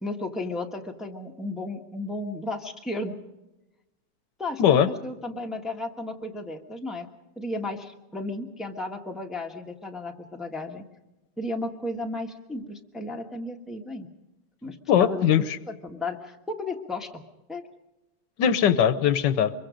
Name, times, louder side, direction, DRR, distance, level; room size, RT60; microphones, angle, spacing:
voice 1, 0.0-3.2 4.4-7.1 7.4-10.8 11.4-14.1 14.6-17.1 17.5-17.6, left 2 dB, ahead, 1 dB, 1.2 m, -34 dB
voice 2, 14.9-15.6 18.4-19.5, left 9 dB, 85° left, 13 dB, 1.5 m, -20 dB
24.0 x 22.5 x 5.1 m, 1.0 s
omnidirectional pair, 1.9 m